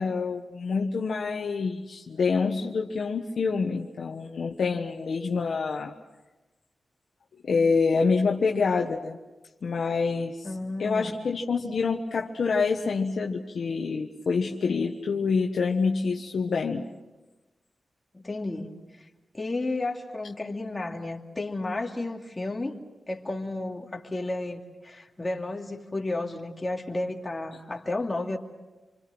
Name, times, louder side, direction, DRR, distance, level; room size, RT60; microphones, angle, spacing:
voice 1, 0.0-5.9 7.4-9.2 9.6-10.5 10.8-16.9, left 4 dB, 70° left, 1 dB, 1.3 m, -26 dB
voice 2, 10.4-11.2 18.1-19.1 19.3-22.8 23.1-28.4, left 2 dB, 25° left, 1 dB, 2.7 m, -32 dB
28.0 x 24.5 x 6.2 m, 1.2 s
wide cardioid pair, 85°, 0 cm